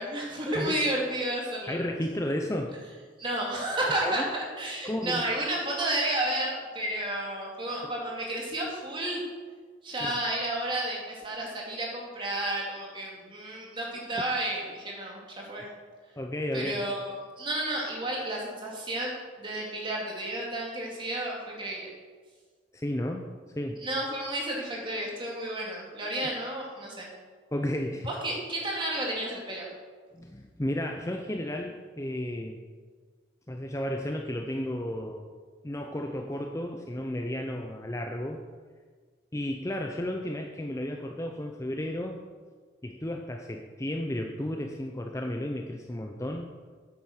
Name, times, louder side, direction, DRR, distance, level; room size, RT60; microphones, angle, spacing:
voice 1, 0.0-1.9 3.2-9.2 9.8-15.7 16.5-21.9 23.8-27.1 28.1-29.7, right 1 dB, 25° right, -2 dB, 2.4 m, -32 dB
voice 2, 1.7-2.8 4.0-4.3 4.8-5.3 10.0-10.1 14.2-14.3 16.2-16.8 22.7-23.2 23.6-23.8 26.2-26.3 27.5-28.1 30.1-32.6 33.5-35.3 35.6-38.4 39.3-42.2 42.8-46.5, left 1 dB, 15° left, 3 dB, 0.6 m, -33 dB
9.6 x 8.5 x 6.3 m, 1.5 s
head